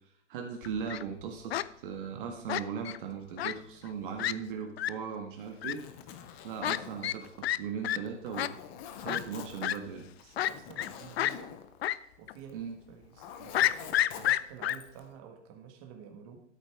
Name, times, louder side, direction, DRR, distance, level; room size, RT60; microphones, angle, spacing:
voice 1, 0.3-1.6 1.8-5.8 6.4-8.5 9.0-10.1 12.5-12.8, right 6 dB, 50° right, 3 dB, 1.6 m, -38 dB
Fowl, 0.6-1.0 1.5-1.7 2.5-3.0 3.4-3.5 3.9-4.0 4.2-4.3 4.8-4.9 5.6-5.7 6.6-6.8 7.0-7.2 7.4-7.6 7.8-8.0 8.4-8.5 9.1-9.2 9.6-9.8 10.4-10.9 11.2-11.3 11.8-12.0 12.3-12.4 13.5-14.8, left 12 dB, 60° left, 0.5 m, -29 dB
Zipper (clothing), 5.5-12.6 12.9-15.1, left 8 dB, 15° left, 0.4 m, -47 dB
voice 2, 10.2-11.5 12.2-16.4, right 7 dB, 30° right, 3 dB, 1.7 m, -50 dB
12.5 x 8.4 x 3.5 m, 0.69 s
hypercardioid pair, 145°, 35 cm